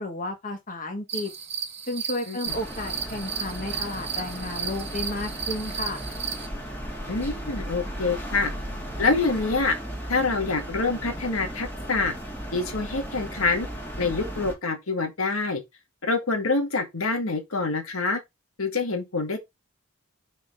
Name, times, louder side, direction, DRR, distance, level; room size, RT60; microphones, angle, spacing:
voice 1, 0.0-1.3 1.9-6.0, left 1 dB, 40° left, 1.8 m, -32 dB
sound 1, 1.1-6.5, right 7 dB, 30° right, 1.2 m, -34 dB
sound 2, 2.5-14.6, equal, 10° left, 2.0 m, -36 dB
voice 2, 7.1-8.5 9.0-9.7 10.1-12.1 12.5-13.7 14.0-15.6 16.0-18.2 18.6-19.4, left 3 dB, 85° left, 1.7 m, -26 dB
6.0 x 4.1 x 3.9 m
head